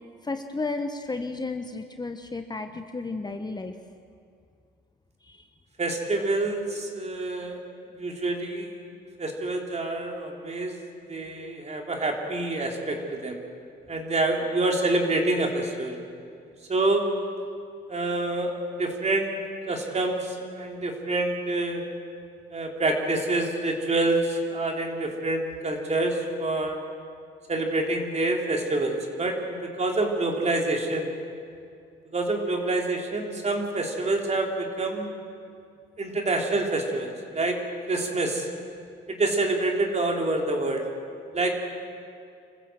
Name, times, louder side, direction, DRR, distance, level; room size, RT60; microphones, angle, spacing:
voice 1, 0.2-3.7 5.2-5.5, left 3 dB, 20° left, 7 dB, 1.1 m, -33 dB
voice 2, 5.8-7.6 7.9-8.8 9.2-10.8 11.1-13.4 13.9-16.0 16.7-17.0 17.9-19.4 19.7-21.8 22.5-26.8 27.5-31.1 32.1-35.2 36.0-37.6 37.9-38.5 39.1-40.8 41.3-41.5, right 2 dB, 35° right, 2 dB, 3.5 m, -27 dB
26.5 x 15.0 x 7.7 m, 2.3 s
cardioid pair, 90°, 20 cm